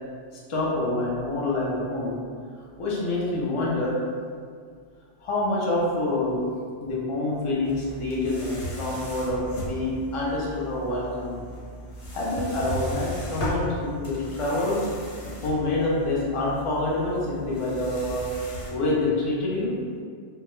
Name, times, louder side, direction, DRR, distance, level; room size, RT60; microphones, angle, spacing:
voice 1, 0.5-2.2 2.8-3.9 5.2-6.4 6.8-11.4 12.1-18.3 18.7-19.7, left 2 dB, 55° left, -5 dB, 0.3 m, -27 dB
sound 1, 7.6-18.7, equal, 80° left, 0.9 m, -36 dB
2.2 x 2.0 x 3.0 m, 2.1 s
omnidirectional pair, 1.2 m